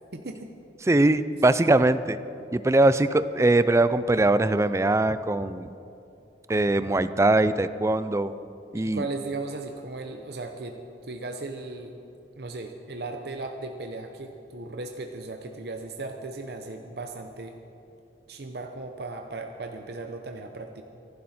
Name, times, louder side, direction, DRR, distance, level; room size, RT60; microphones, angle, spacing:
voice 1, 0.1-0.5 8.8-11.9 12.4-17.5 18.3-20.8, right 3 dB, 60° right, 4 dB, 0.8 m, -36 dB
voice 2, 0.9-2.2 2.5-5.7 6.5-8.3 8.7-9.0, right 2 dB, 15° right, 13 dB, 0.4 m, -21 dB
25.0 x 12.0 x 4.3 m, 2.8 s
head